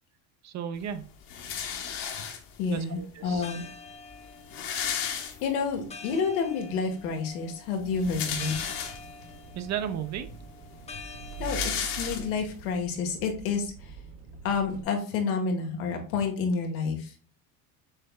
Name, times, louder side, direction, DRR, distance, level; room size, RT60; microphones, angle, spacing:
voice 1, 0.4-1.1 2.7-3.4 9.6-10.3, right 8 dB, 40° right, 10 dB, 0.6 m, -34 dB
sound 1, 1.3-2.7 3.6-3.7 3.9-4.0 4.2-5.8 6.3-6.4 7.8-9.3 9.9-10.0 10.3-12.6, left 7 dB, 55° left, 1.2 m, -34 dB
voice 2, 2.6-3.6 5.4-8.5 11.4-13.9 14.4-17.2, left 5 dB, 85° left, 3 dB, 1.4 m, -29 dB
sound 2, 3.2-12.3, left 4 dB, 15° left, 0.6 m, -47 dB
Engine, 7.7-14.8, right 6 dB, 80° right, 1.5 m, -44 dB
6.5 x 3.4 x 2.2 m, 0.39 s
supercardioid pair, 110°, 42 cm